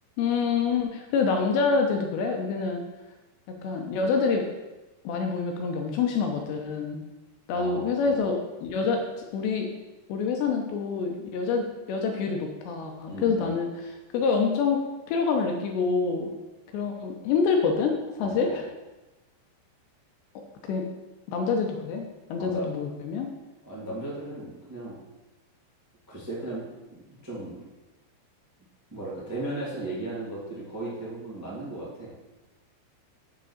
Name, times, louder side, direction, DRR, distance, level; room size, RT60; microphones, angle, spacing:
voice 1, 0.2-2.8 3.5-4.5 5.0-7.0 7.5-9.7 10.1-16.3 16.7-18.6 20.6-20.8 21.3-23.3, left 5 dB, 80° left, 3 dB, 2.7 m, -27 dB
voice 2, 7.5-8.2 13.1-13.6 18.2-18.7 22.4-22.7 23.6-24.9 26.1-27.6 28.9-32.1, right 2 dB, 10° right, -7 dB, 1.1 m, -36 dB
7.3 x 5.2 x 6.6 m, 1.1 s
omnidirectional pair, 5.4 m